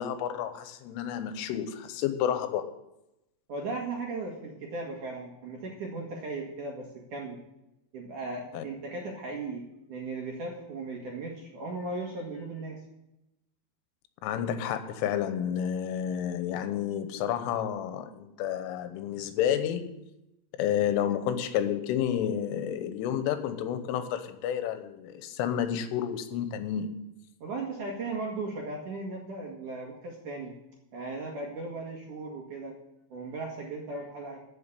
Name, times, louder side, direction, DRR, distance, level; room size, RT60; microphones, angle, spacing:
voice 1, 0.0-2.7 8.5-8.6 14.2-20.0 20.6-27.1, left 9 dB, 90° left, 10 dB, 3.5 m, -30 dB
voice 2, 3.5-7.4 7.9-12.8 27.4-30.6 30.9-32.8 33.1-34.4, right 3 dB, 60° right, -1 dB, 2.3 m, -37 dB
14.0 x 5.9 x 8.3 m, 0.89 s
omnidirectional pair, 5.5 m